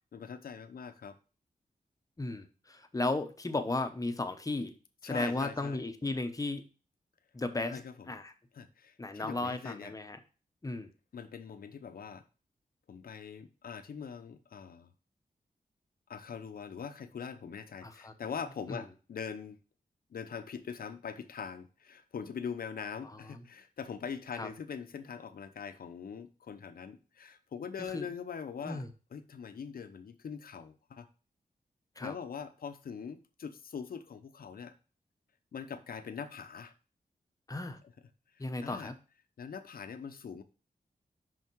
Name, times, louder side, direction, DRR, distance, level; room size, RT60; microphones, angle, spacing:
voice 1, 0.1-1.2 5.0-5.8 7.7-8.2 8.5-9.9 11.1-12.2 12.9-14.9 16.1-19.6 20.1-28.8 29.1-31.1 32.0-34.7 35.5-36.7 38.4-38.9 39.4-40.4, left 6 dB, 75° left, 9 dB, 0.8 m, -42 dB
voice 2, 2.2-4.7 5.0-6.6 7.3-8.3 9.0-10.2 10.6-10.9 17.8-18.1 18.7-18.8 23.0-23.4 24.4-24.5 27.8-28.1 28.6-28.9 32.0-32.1 37.5-37.8 38.4-39.0, left 2 dB, 25° left, 8 dB, 0.9 m, -35 dB
5.7 x 5.7 x 4.6 m, 0.35 s
wide cardioid pair, 110°, 15 cm